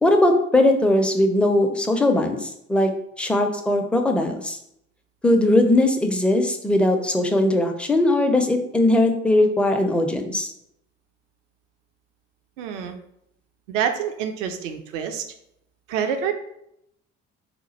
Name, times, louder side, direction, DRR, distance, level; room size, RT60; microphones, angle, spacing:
voice 1, 0.0-2.9 3.2-4.6 5.2-10.5, left 1 dB, 5° left, 4 dB, 0.4 m, -19 dB
voice 2, 12.6-13.0 13.7-15.2 15.9-16.3, right 8 dB, 75° right, 6 dB, 0.5 m, -26 dB
2.9 x 2.2 x 4.2 m, 0.77 s
hypercardioid pair, 50°, 38 cm